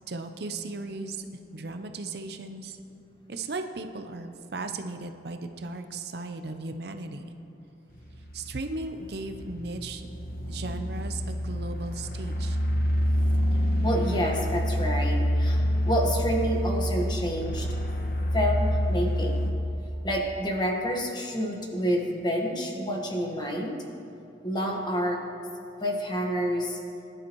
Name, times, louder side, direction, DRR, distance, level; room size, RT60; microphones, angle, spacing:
voice 1, 0.1-1.3 1.5-2.8 3.3-7.2 8.3-10.1 10.5-12.6, right 3 dB, 60° right, 7 dB, 0.6 m, -36 dB
sound 1, 7.9-19.5, equal, 50° left, 1.2 m, -27 dB
voice 2, 13.8-17.7 18.3-19.4 20.0-23.8 24.4-25.2 25.8-26.8, equal, 25° left, 1 dB, 1.4 m, -28 dB
20.5 x 11.0 x 3.1 m, 2.7 s
head